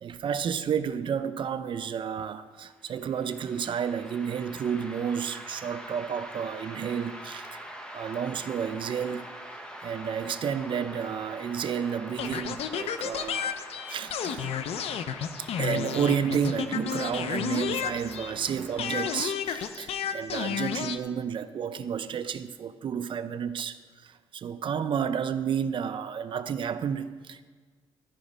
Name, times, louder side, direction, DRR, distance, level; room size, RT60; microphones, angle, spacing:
voice 1, 0.0-7.6 7.9-9.3 9.8-13.5 13.9-14.5 15.6-27.5, right 7 dB, 55° right, 11 dB, 0.5 m, -31 dB
sound 1, 2.8-19.2, equal, 10° left, 1.1 m, -45 dB
sound 2, 12.2-18.4 18.8-21.0, left 8 dB, 75° left, 0.5 m, -32 dB
13.0 x 5.2 x 5.0 m, 1.5 s
cardioid pair, 110°, 10 cm